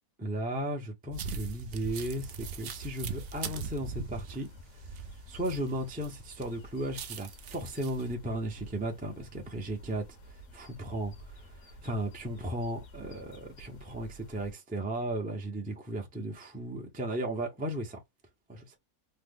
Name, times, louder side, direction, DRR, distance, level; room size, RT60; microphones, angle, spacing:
voice 1, 0.2-4.5 5.3-18.0 18.5-18.8, right 1 dB, 10° right, 0.4 m, -35 dB
sound 1, 1.1-6.1 6.4-8.0, right 5 dB, 75° right, 0.5 m, -40 dB
sound 2, 1.9-14.5, right 1 dB, 65° left, 1.1 m, -51 dB
3.1 x 2.0 x 3.5 m
omnidirectional pair, 1.5 m